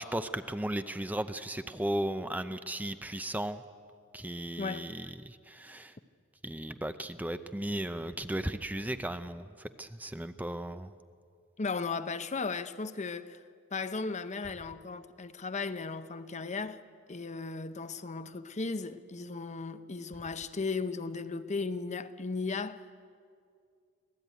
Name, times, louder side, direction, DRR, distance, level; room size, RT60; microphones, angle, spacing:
voice 1, 0.0-3.6 4.1-5.9 6.4-10.9, right 1 dB, 10° right, 0.6 m, -36 dB
voice 2, 4.6-4.9 11.6-13.4 13.7-16.8 17.1-22.8, left 4 dB, 35° left, 0.7 m, -36 dB
25.5 x 17.5 x 9.3 m
head